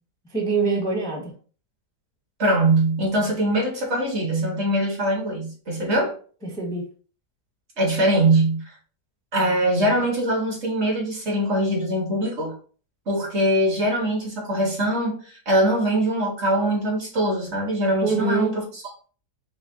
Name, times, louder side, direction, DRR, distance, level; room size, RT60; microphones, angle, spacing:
voice 1, 0.3-1.3 6.4-6.8 18.0-18.6, right 3 dB, 5° left, 0.5 m, -24 dB
voice 2, 2.4-6.2 7.8-8.8 9.3-12.5 13.1-18.8, right 1 dB, 45° right, 1.4 m, -22 dB
4.7 x 2.1 x 3.6 m
omnidirectional pair, 1.8 m